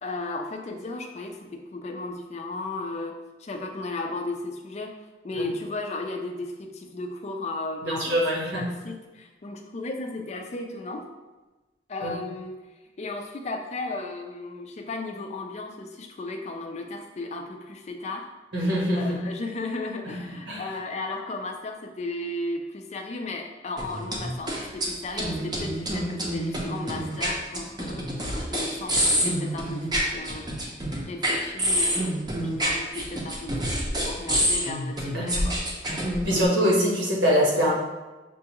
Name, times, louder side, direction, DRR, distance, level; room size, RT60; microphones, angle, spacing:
voice 1, 0.0-4.9 5.2-11.0 11.9-12.6 13.0-18.3 19.0-30.5 31.0-35.6, left 2 dB, 35° left, 3 dB, 0.4 m, -35 dB
voice 2, 7.8-8.6 12.0-12.1 18.5-19.2 20.5-20.6 35.1-35.4 35.8-36.0 36.2-37.7, equal, 75° right, -4 dB, 1.2 m, -24 dB
sound 1, 23.8-24.9 25.2-36.5, equal, 20° right, 0.6 m, -27 dB
6.0 x 2.4 x 2.9 m, 1.1 s
head